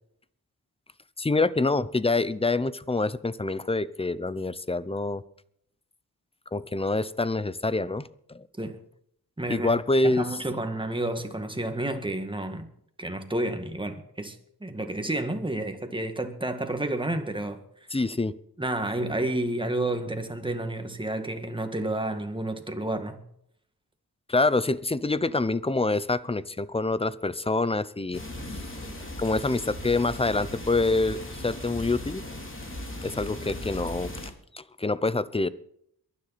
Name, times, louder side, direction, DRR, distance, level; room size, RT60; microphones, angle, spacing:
voice 1, 1.2-5.2 6.5-8.4 9.5-10.3 17.9-18.3 24.3-28.2 28.5-28.6 29.2-32.2 33.0-34.1 34.5-35.5, left 2 dB, 15° left, 0.7 m, -26 dB
voice 2, 9.4-9.7 10.0-12.7 13.0-17.6 18.6-23.2, right 1 dB, 15° right, 1.9 m, -30 dB
sound 1, 28.1-34.3, left 1 dB, 30° left, 3.3 m, -38 dB
22.5 x 10.0 x 4.2 m
wide cardioid pair, 105°, 38 cm